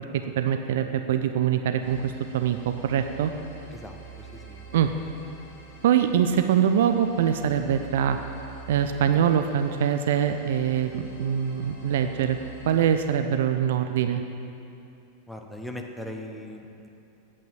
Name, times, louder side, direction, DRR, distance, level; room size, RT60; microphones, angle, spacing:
voice 1, 0.4-3.3 4.7-4.9 5.8-8.2 8.7-12.4 12.7-14.2, right 9 dB, 55° right, 8 dB, 0.5 m, -23 dB
sound 1, 1.8-13.1, right 4 dB, 55° left, 2.8 m, -47 dB
voice 2, 3.7-4.6 15.3-16.9, left 1 dB, ahead, 2 dB, 1.1 m, -39 dB
8.9 x 8.6 x 7.3 m, 2.7 s
figure-of-eight pair, 90°, 0 cm